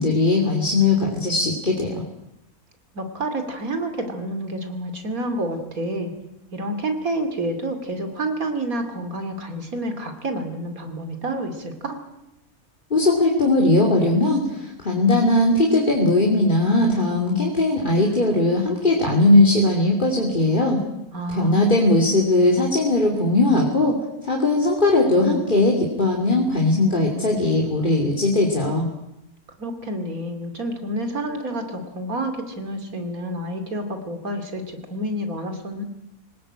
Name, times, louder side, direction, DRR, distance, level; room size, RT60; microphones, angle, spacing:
voice 1, 0.0-2.0 12.9-20.8 21.3-24.0 24.2-28.9, left 2 dB, 35° left, -2 dB, 3.0 m, -19 dB
voice 2, 2.9-6.1 6.5-12.0 21.1-22.0 29.6-35.8, right 1 dB, 70° right, 6 dB, 3.1 m, -29 dB
23.5 x 19.0 x 8.9 m, 0.90 s
omnidirectional pair, 1.5 m